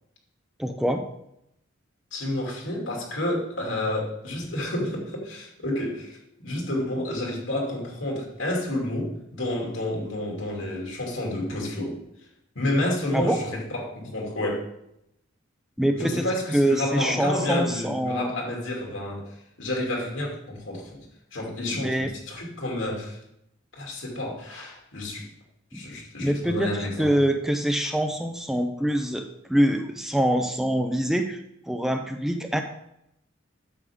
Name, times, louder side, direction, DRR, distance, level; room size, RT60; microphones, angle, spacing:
voice 1, 0.6-1.0 13.1-13.4 15.8-16.3 16.5-18.3 21.8-22.1 26.2-31.4 31.7-32.6, right 1 dB, ahead, 5 dB, 0.5 m, -24 dB
voice 2, 2.1-11.9 12.5-14.7 15.9-21.0 21.3-23.2 23.7-25.3 25.7-27.1, left 1 dB, 85° left, -2 dB, 2.8 m, -30 dB
9.6 x 7.4 x 3.6 m, 0.79 s
head